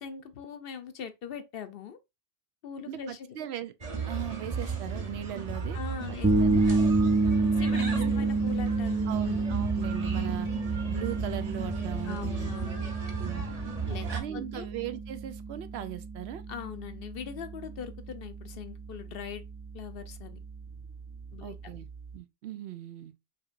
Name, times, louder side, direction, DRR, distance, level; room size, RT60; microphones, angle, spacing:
voice 1, 0.0-2.0 2.6-3.4 5.7-6.9 7.6-7.8 8.1-9.5 12.0-12.9 13.9-14.7 16.5-19.4 19.7-20.4 21.3-21.6, left 7 dB, 65° left, 0.8 m, -41 dB
voice 2, 2.9-3.7 4.0-5.8 6.1-6.6 7.7-8.1 9.1-10.5 10.9-12.6 13.2-13.5 14.1-16.4 21.4-23.2, right 11 dB, 80° right, 0.8 m, -38 dB
sound 1, 3.8-14.2, right 5 dB, 40° right, 1.0 m, -34 dB
sound 2, 6.2-22.2, right 3 dB, 20° right, 0.4 m, -30 dB
5.0 x 2.9 x 2.5 m
omnidirectional pair, 1.1 m